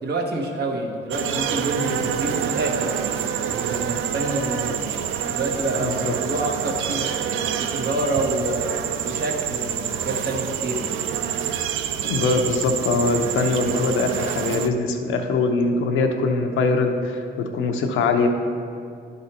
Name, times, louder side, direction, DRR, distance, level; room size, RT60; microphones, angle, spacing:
voice 1, 0.0-4.8 5.3-8.7 9.0-11.0, right 2 dB, 55° right, 1 dB, 1.2 m, -28 dB
sound 1, 1.1-14.7, right 9 dB, 80° right, 0.4 m, -27 dB
voice 2, 5.8-6.1 12.0-18.3, left 3 dB, 85° left, 5 dB, 0.7 m, -22 dB
11.0 x 4.0 x 4.3 m, 2.3 s
cardioid pair, 90°, 20 cm